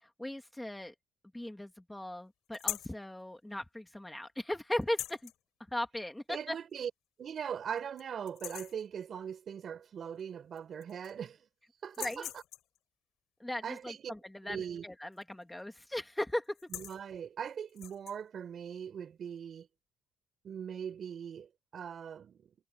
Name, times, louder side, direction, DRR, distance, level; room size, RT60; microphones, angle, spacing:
voice 1, 0.2-0.9 1.3-5.3 5.7-6.6 12.0-12.3 13.4-16.7, left 1 dB, 5° left, 2.7 m, -38 dB
sound 1, 2.5-3.0 4.8-5.4 6.7-6.8 7.3-7.4 7.8-8.0 8.3-8.8 10.2-10.3 10.6-11.3 11.8-12.8 15.1-15.4 15.7-16.0 16.4-17.0 17.7-18.2, left 13 dB, 80° left, 5.0 m, -41 dB
voice 2, 6.3-6.9 7.2-11.5 11.8-12.4 13.6-14.1 14.4-14.9 16.7-19.7 20.4-22.5, right 8 dB, 55° right, 4.3 m, -40 dB
cardioid pair, 100°, 0 cm